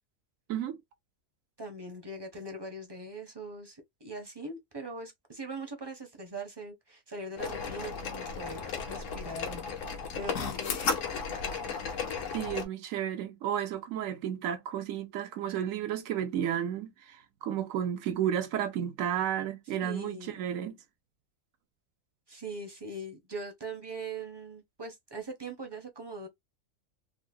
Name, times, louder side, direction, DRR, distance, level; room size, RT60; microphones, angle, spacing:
voice 1, 1.6-9.6 10.1-11.0 19.8-20.4 22.3-26.3, right 2 dB, 30° right, 0.5 m, -41 dB
sound 1, 7.4-12.6, left 5 dB, 70° left, 1.1 m, -34 dB
voice 2, 12.3-20.8, right 10 dB, 80° right, 1.0 m, -32 dB
3.7 x 2.0 x 2.6 m
omnidirectional pair, 1.4 m